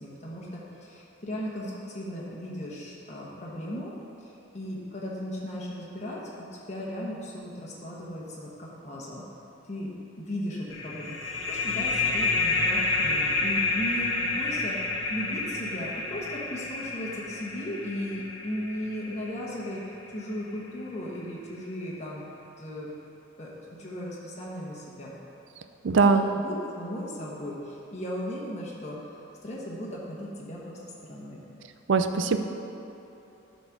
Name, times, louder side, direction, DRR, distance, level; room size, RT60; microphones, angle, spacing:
voice 1, 0.0-3.9 4.2-9.2 9.7-9.9 10.2-14.8 15.1-22.2 22.6-22.9 23.4-23.5 23.8-25.2 25.9-29.1 29.4-31.4, equal, 35° left, -5 dB, 1.1 m, -36 dB
sound 1, 10.7-20.0, left 3 dB, 75° left, 1.4 m, -29 dB
voice 2, 25.8-26.3 31.9-32.4, right 4 dB, 70° right, 8 dB, 0.4 m, -21 dB
9.7 x 4.2 x 5.9 m, 2.9 s
head